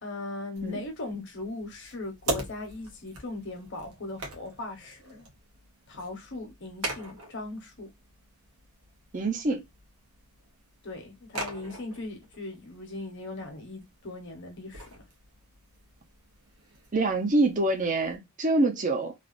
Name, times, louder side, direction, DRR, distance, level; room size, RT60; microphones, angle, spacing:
voice 1, 0.0-5.3 5.9-7.9 10.8-14.8, left 2 dB, 55° left, 1.1 m, -39 dB
sound 1, 0.6-18.2, right 2 dB, 80° right, 1.1 m, -42 dB
voice 2, 9.1-9.6 16.9-19.1, right 2 dB, 35° right, 0.6 m, -25 dB
3.2 x 2.4 x 2.5 m
head